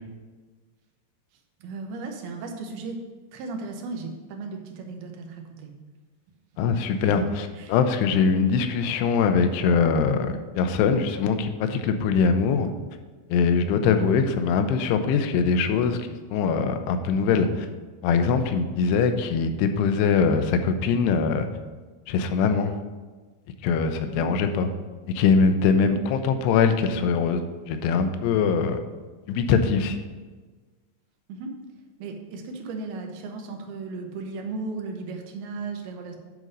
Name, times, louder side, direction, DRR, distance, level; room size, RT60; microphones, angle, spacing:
voice 1, 1.6-3.0 3.3-5.7 7.0-7.3 7.6-7.7 8.4-8.5 13.8-14.0 18.8-19.0 24.0-24.3 25.8-26.0 31.3-31.5 32.0-36.2, right 3 dB, 75° right, 3 dB, 2.6 m, -35 dB
voice 2, 6.6-12.7 13.3-17.7 18.0-21.5 22.1-22.7 23.6-24.7 25.2-28.8 29.3-30.0, left 5 dB, 85° left, 8 dB, 2.7 m, -22 dB
9.3 x 3.8 x 5.2 m, 1.3 s
omnidirectional pair, 4.8 m